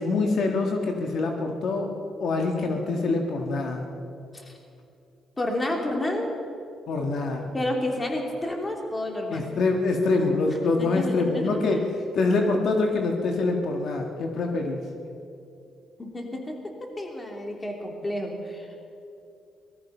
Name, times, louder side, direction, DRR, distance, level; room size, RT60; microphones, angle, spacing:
voice 1, 0.0-1.9 2.2-3.9 6.9-7.5 9.3-11.8 12.2-14.8, left 3 dB, 65° left, 3 dB, 1.6 m, -25 dB
voice 2, 5.4-6.3 7.4-9.5 10.8-11.8 16.0-18.7, left 1 dB, 20° left, 2 dB, 2.9 m, -30 dB
18.5 x 13.5 x 5.6 m, 2.6 s
cardioid pair, 90°, 0 cm